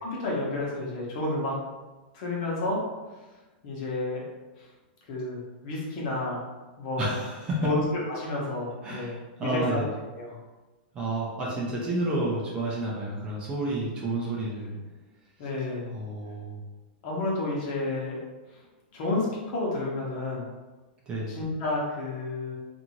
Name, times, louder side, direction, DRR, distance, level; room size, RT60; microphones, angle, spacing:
voice 1, 0.0-1.5 2.1-2.8 3.6-4.2 4.6-4.7 5.1-6.4 6.8-7.1 7.6-9.1 9.4-9.8 10.2-10.4 15.4-15.9 17.0-18.2 18.9-20.5 21.3-22.5, left 2 dB, 45° left, -4 dB, 0.9 m, -30 dB
voice 2, 7.0-7.7 8.8-9.9 10.9-14.8 15.9-16.6 21.1-21.3, right 1 dB, 20° right, -5 dB, 0.5 m, -30 dB
2.6 x 2.6 x 2.9 m, 1.2 s
supercardioid pair, 160°, 5 cm